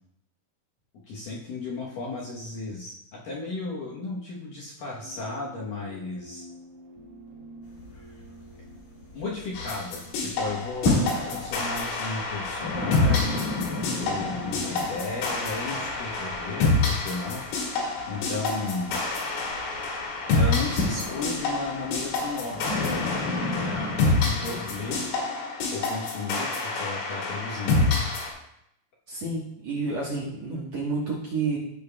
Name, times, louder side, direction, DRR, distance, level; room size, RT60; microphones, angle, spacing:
voice 1, 1.1-6.4 9.1-11.0 11.3-13.6 14.0-19.1 20.3-22.9 23.6-25.1 25.7-27.8, left 3 dB, 70° left, -5 dB, 2.1 m, -35 dB
sound 1, 4.9-11.0, right 1 dB, 65° right, 2.1 m, -48 dB
sound 2, 7.6-9.8 10.1-25.1, left 2 dB, 45° left, 2.8 m, -33 dB
sound 3, 9.5-28.3, left 3 dB, 90° left, 4.6 m, -28 dB
voice 2, 29.1-31.6, right 3 dB, 80° right, -5 dB, 1.5 m, -30 dB
16.0 x 6.7 x 2.3 m, 0.77 s
omnidirectional pair, 5.5 m